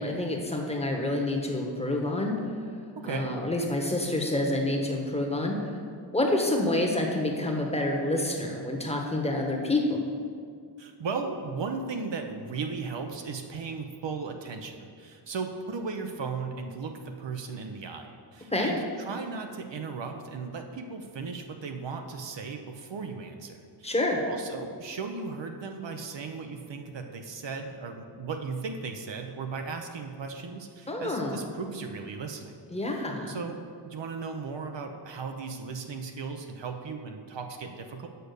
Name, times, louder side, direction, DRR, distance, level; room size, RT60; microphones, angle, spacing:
voice 1, 0.0-2.3 3.0-5.6 6.1-10.0 18.5-18.7 23.8-24.2 30.9-31.5 32.7-33.4, left 1 dB, 15° left, 1 dB, 1.1 m, -28 dB
voice 2, 3.0-3.4 10.8-24.0 24.3-32.6 32.8-38.1, right 4 dB, 70° right, 4 dB, 0.7 m, -36 dB
6.8 x 5.2 x 6.7 m, 2.2 s
wide cardioid pair, 85°, 45 cm